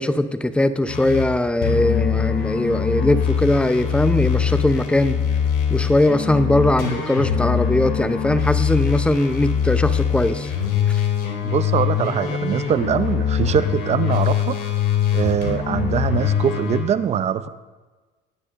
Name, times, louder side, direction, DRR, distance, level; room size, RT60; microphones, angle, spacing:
voice 1, 0.0-5.2 5.7-10.5 10.9-11.0, left 1 dB, 5° left, 11 dB, 0.6 m, -20 dB
sound 1, 0.9-1.3 1.6-16.8, left 8 dB, 70° left, 2.6 m, -23 dB
voice 2, 11.4-14.6 15.1-17.5, right 8 dB, 40° right, 13 dB, 0.6 m, -22 dB
21.0 x 9.7 x 2.6 m, 1.3 s
supercardioid pair, 105°, 17 cm